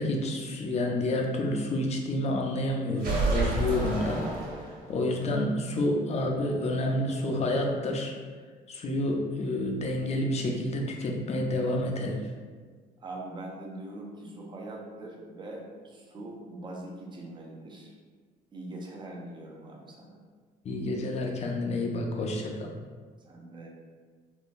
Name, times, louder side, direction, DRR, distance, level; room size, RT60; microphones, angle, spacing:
voice 1, 0.0-4.2 4.9-8.1 8.7-12.2 20.6-22.7, left 1 dB, 40° left, 1 dB, 0.5 m, -29 dB
sound 1, 3.0-5.1, right 2 dB, 60° right, 1.2 m, -29 dB
voice 2, 13.0-17.9 18.5-20.2 23.3-23.7, right 2 dB, 25° right, -1 dB, 0.6 m, -42 dB
3.6 x 2.3 x 2.5 m, 1.6 s
cardioid pair, 110°, 17 cm